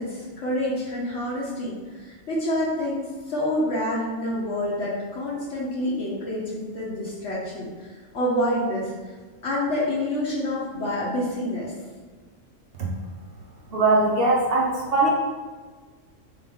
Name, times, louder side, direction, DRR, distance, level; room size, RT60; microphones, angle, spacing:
voice 1, 0.0-7.9 8.1-8.9 9.4-11.7, left 1 dB, 65° left, -6 dB, 1.2 m, -27 dB
voice 2, 13.7-15.1, right 2 dB, 55° right, -2 dB, 0.8 m, -20 dB
3.8 x 3.7 x 3.5 m, 1.4 s
omnidirectional pair, 1.3 m